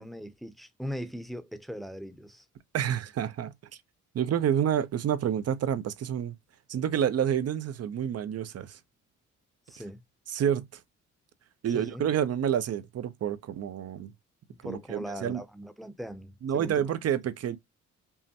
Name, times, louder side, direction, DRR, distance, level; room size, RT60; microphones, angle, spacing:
voice 1, 0.0-2.5 9.7-10.0 11.7-12.0 14.5-17.0, equal, ahead, 0.7 m, -40 dB
voice 2, 2.7-3.5 4.1-6.4 6.7-8.8 10.3-10.8 11.6-14.1 14.6-15.4 16.4-17.6, right 9 dB, 55° right, 0.6 m, -28 dB
5.4 x 2.1 x 2.8 m
cardioid pair, 70°, 30 cm